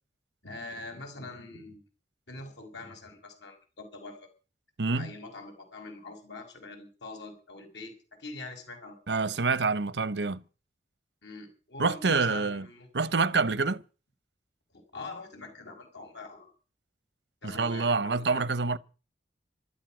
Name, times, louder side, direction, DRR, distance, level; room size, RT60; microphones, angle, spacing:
voice 1, 0.4-1.8 2.3-4.3 5.0-7.9 8.2-9.4 11.2-12.9 14.9-16.5 17.4-18.4, left 3 dB, 85° left, 5.8 m, -44 dB
voice 2, 4.8-5.1 9.1-10.4 11.8-12.7 12.9-13.8 17.4-18.8, right 4 dB, 80° right, 0.9 m, -27 dB
15.5 x 12.5 x 6.1 m
head